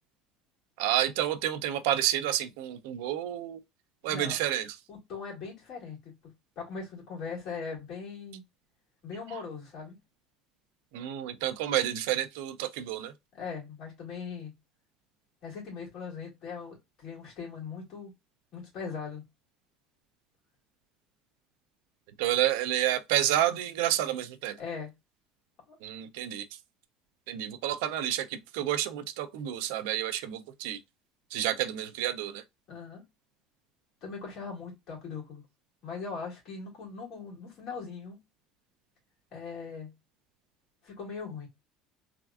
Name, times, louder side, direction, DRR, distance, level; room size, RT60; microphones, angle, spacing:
voice 1, 0.8-3.6 4.0-4.7 10.9-13.1 22.2-24.6 25.8-26.5 27.3-30.8 31.3-32.4, right 12 dB, 90° right, 0.4 m, -29 dB
voice 2, 4.0-4.4 4.9-6.1 6.6-8.4 9.0-10.0 13.3-14.5 15.4-18.1 18.5-19.2 24.6-24.9 25.7-25.8 32.7-33.0 34.0-35.4 35.8-38.2 39.3-39.9 40.8-41.5, left 5 dB, 40° left, 1.9 m, -40 dB
3.4 x 2.4 x 2.2 m
cardioid pair, 175°, 0 cm